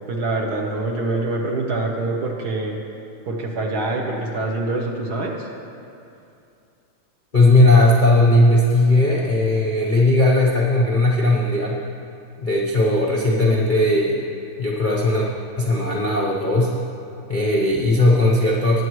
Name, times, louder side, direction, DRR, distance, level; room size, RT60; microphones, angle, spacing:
voice 1, 0.0-2.8 3.2-5.5, right 2 dB, 60° right, 1 dB, 1.3 m, -25 dB
voice 2, 7.3-11.8 12.4-14.3 14.6-15.3 15.6-16.7 17.3-18.8, left 1 dB, 45° left, -4 dB, 0.6 m, -17 dB
20.0 x 8.1 x 3.1 m, 2.6 s
omnidirectional pair, 2.3 m